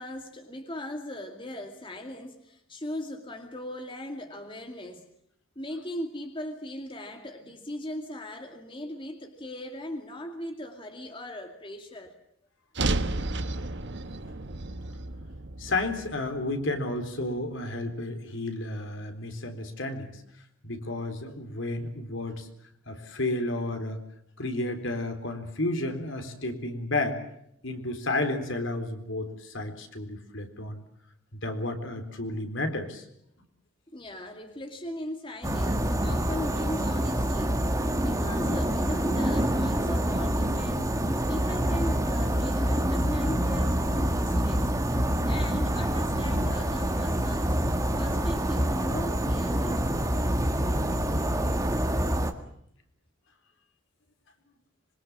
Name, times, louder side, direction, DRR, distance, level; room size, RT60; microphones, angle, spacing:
voice 1, 0.0-5.1 5.6-12.2 33.9-41.0 41.3-44.7 45.2-47.6 48.0-49.8, left 1 dB, 25° left, 5 dB, 2.3 m, -38 dB
sound 1, 12.7-17.0, right 2 dB, 55° right, 1.3 m, -32 dB
voice 2, 15.6-20.1 20.6-22.5 22.9-24.0 24.4-27.2 27.6-30.8 31.3-33.0, left 2 dB, 65° left, 6 dB, 3.9 m, -32 dB
sound 2, 35.4-52.3, right 1 dB, 15° right, 1.8 m, -26 dB
26.0 x 23.5 x 7.3 m, 0.72 s
head